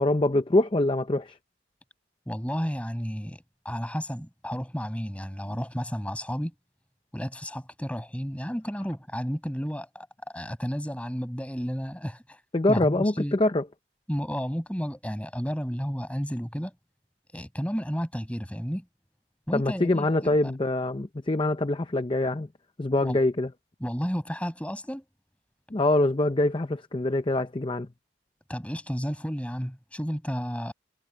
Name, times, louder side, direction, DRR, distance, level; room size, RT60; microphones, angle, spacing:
voice 1, 0.0-1.3 12.5-13.6 19.5-22.5 22.8-23.5 25.7-27.9, left 2 dB, 25° left, 0.6 m, -24 dB
voice 2, 2.3-6.5 7.1-10.1 10.3-12.4 12.7-13.4 14.1-16.7 17.3-18.8 19.5-20.5 23.0-23.2 23.8-25.0 28.5-30.7, equal, 5° left, 6.2 m, -32 dB
head